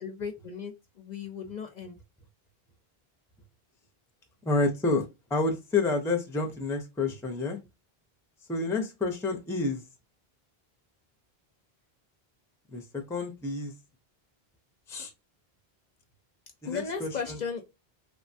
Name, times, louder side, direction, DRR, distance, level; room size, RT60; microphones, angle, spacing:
voice 1, 0.0-2.0 16.7-17.6, left 6 dB, 55° left, 0.6 m, -36 dB
voice 2, 4.5-5.0 5.3-7.6 8.5-9.9 12.7-13.7 14.9-15.1 16.6-17.4, left 3 dB, 5° left, 0.4 m, -29 dB
3.3 x 2.1 x 2.5 m
omnidirectional pair, 1.0 m